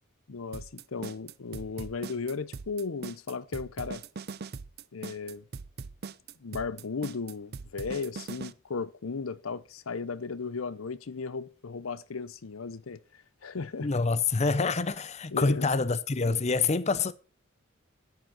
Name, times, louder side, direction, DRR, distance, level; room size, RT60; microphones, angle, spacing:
voice 1, 0.3-4.0 4.9-5.4 6.4-13.9 15.3-15.7, left 4 dB, 80° left, 0.7 m, -36 dB
sound 1, 0.5-8.5, right 4 dB, 50° right, 0.6 m, -40 dB
voice 2, 13.8-17.1, left 4 dB, 35° left, 0.6 m, -26 dB
10.5 x 7.7 x 6.0 m
head